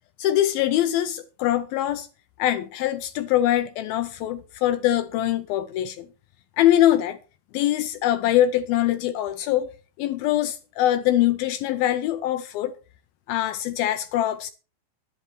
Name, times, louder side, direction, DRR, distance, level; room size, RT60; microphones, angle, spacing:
voice 1, 0.2-2.1 2.4-6.1 6.6-7.2 7.5-9.7 10.0-12.8 13.3-14.5, left 13 dB, 85° left, 2.1 m, -23 dB
12.0 x 11.5 x 4.4 m
omnidirectional pair, 5.1 m